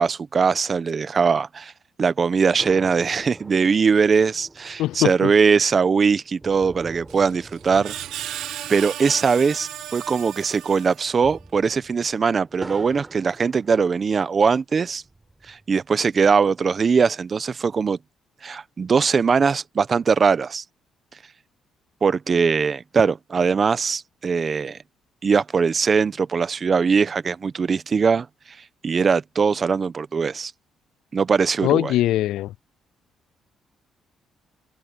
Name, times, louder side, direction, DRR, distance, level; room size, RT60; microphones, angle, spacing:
voice 1, 0.0-1.7 2.0-7.9 8.7-15.0 15.5-18.0 18.4-20.6 22.0-24.8 25.2-28.3 28.8-30.5 31.1-31.9, right 5 dB, 40° right, 0.9 m, -21 dB
sound 1, 2.6-10.2 10.4-10.5 11.0-14.3 14.9-15.9, right 2 dB, 15° right, 6.0 m, -44 dB
voice 2, 4.8-5.3 31.6-32.5, left 14 dB, 85° left, 0.3 m, -21 dB
Screech, 7.1-11.4, right 12 dB, 80° right, 1.2 m, -35 dB
open air
cardioid pair, 90°, 0 cm